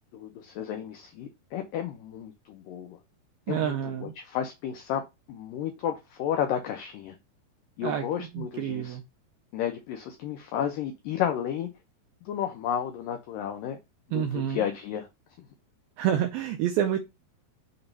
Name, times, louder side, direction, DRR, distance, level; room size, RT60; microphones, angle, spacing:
voice 1, 0.1-3.0 3.5-5.0 5.3-7.2 7.8-9.0 9.5-11.7 12.2-13.8 14.1-15.1 15.4-15.5, left 9 dB, 85° left, 1.9 m, -32 dB
voice 2, 3.5-4.1 7.8-9.0 14.1-14.6 16.0-17.0, right 10 dB, 80° right, 2.2 m, -28 dB
6.8 x 3.0 x 5.2 m
omnidirectional pair, 4.8 m